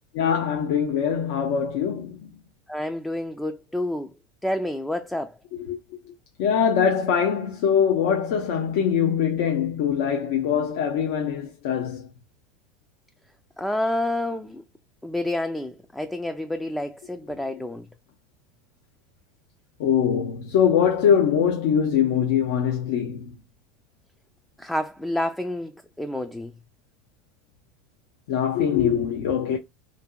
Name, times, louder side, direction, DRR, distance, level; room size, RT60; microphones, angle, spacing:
voice 1, 0.1-2.3 5.7-5.8 6.4-12.0 19.8-23.2 28.3-29.6, left 8 dB, 70° left, 0.5 m, -22 dB
voice 2, 2.7-4.1 4.4-5.3 13.6-14.6 15.0-17.9 24.6-25.7 26.0-26.5, left 1 dB, 5° left, 0.3 m, -29 dB
2.8 x 2.6 x 2.2 m
hypercardioid pair, 100°, 0 cm